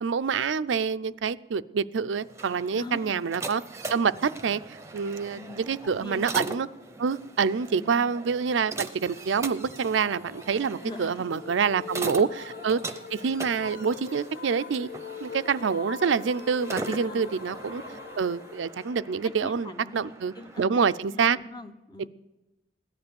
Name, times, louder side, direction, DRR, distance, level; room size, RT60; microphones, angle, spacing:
voice 1, 0.0-3.6 3.9-6.7 7.0-12.8 13.1-14.9 15.2-17.8 18.2-21.4, right 6 dB, 90° right, 13 dB, 0.5 m, -27 dB
sound 1, 2.2-20.7, right 2 dB, 15° right, 0.7 m, -40 dB
voice 2, 2.7-3.2 5.4-6.3 7.5-8.1 10.8-11.8 17.0-17.3 19.2-22.1, left 2 dB, 25° left, 9 dB, 0.8 m, -43 dB
sound 2, 8.8-19.7, left 5 dB, 50° left, 0.9 m, -43 dB
16.5 x 11.5 x 6.9 m, 1.0 s
head